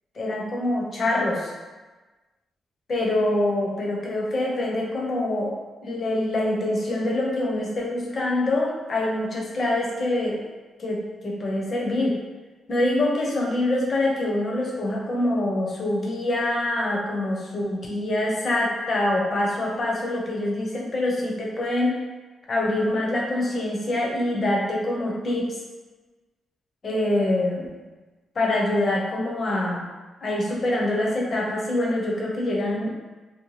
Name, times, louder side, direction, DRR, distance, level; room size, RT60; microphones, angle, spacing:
voice 1, 0.1-1.5 2.9-10.4 10.8-12.2 12.7-22.0 22.5-25.6 26.8-27.7 28.4-29.9 30.2-32.9, left 1 dB, 45° left, -2 dB, 0.6 m, -25 dB
2.6 x 2.1 x 3.1 m, 1.3 s
cardioid pair, 95°, 0 cm